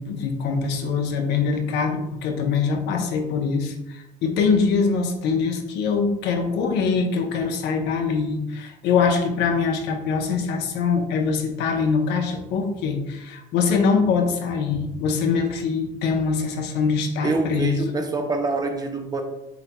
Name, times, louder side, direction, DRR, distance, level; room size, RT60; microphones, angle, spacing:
voice 1, 0.0-17.9, left 5 dB, 85° left, 4 dB, 0.7 m, -23 dB
voice 2, 17.2-19.2, right 3 dB, 25° right, 5 dB, 0.6 m, -25 dB
7.8 x 2.9 x 2.2 m, 0.90 s
cardioid pair, 110°, 17 cm